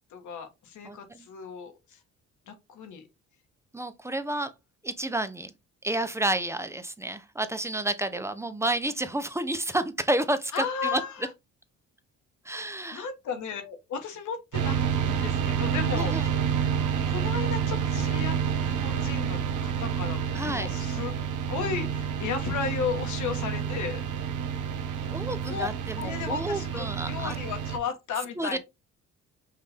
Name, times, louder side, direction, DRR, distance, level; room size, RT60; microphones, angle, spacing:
voice 1, 0.1-2.0 2.5-3.1 10.5-11.3 12.9-16.4 17.1-21.1 21.5-24.0 25.4-25.7 26.0-28.6, left 6 dB, 75° left, 1.5 m, -34 dB
voice 2, 0.8-1.3 3.7-4.5 4.8-5.5 5.8-11.0 12.5-13.1 15.9-16.3 20.3-20.7 25.0-27.4 28.4-28.6, right 1 dB, 10° right, 0.6 m, -30 dB
sound 1, 14.5-27.8, right 7 dB, 80° right, 0.9 m, -29 dB
5.5 x 2.6 x 3.4 m
cardioid pair, 90°, 30 cm